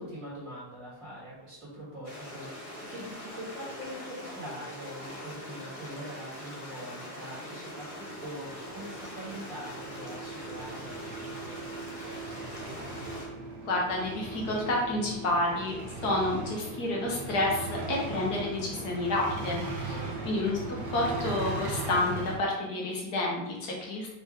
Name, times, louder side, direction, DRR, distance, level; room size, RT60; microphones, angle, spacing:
voice 1, 0.0-12.9 19.9-20.5, equal, 50° right, -8 dB, 1.9 m, -43 dB
Stream, 2.0-13.3, equal, 30° left, 0.6 m, -42 dB
sound 1, 7.8-22.4, right 3 dB, 70° right, 1.5 m, -39 dB
voice 2, 13.6-15.7 16.0-19.6 20.2-20.6 20.9-24.1, left 2 dB, 65° left, -2 dB, 1.5 m, -29 dB
4.7 x 2.9 x 3.4 m, 0.93 s
omnidirectional pair, 1.9 m